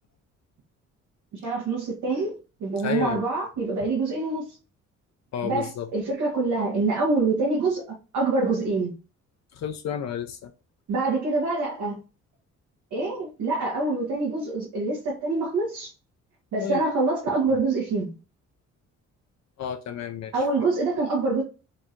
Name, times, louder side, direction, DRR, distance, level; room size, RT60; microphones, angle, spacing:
voice 1, 1.3-4.5 5.4-7.8 8.1-8.9 10.9-12.0 12.9-15.9 16.5-18.1 20.3-21.4, right 3 dB, 80° right, 1.5 m, -25 dB
voice 2, 2.8-3.3 5.3-5.9 9.5-10.5 16.6-16.9 19.6-20.4, left 9 dB, 65° left, 0.6 m, -31 dB
3.8 x 2.5 x 4.3 m
cardioid pair, 90°, 30 cm